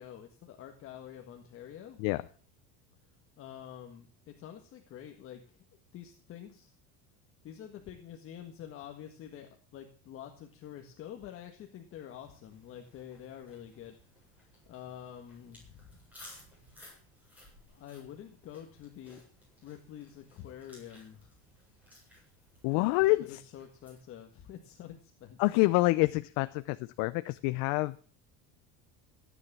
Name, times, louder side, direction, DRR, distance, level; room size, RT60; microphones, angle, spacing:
voice 1, 0.0-2.0 3.4-5.6 5.9-6.7 7.4-14.3 14.7-16.0 17.7-19.2 19.6-21.3 23.2-25.4, left 10 dB, 35° left, 4 dB, 1.7 m, -47 dB
sound 1, 12.2-24.0, left 1 dB, 5° right, 8.0 m, -58 dB
voice 2, 22.6-23.4 25.4-28.0, left 21 dB, 65° left, 12 dB, 0.7 m, -27 dB
16.0 x 9.8 x 7.4 m, 0.41 s
cardioid pair, 175°, 36 cm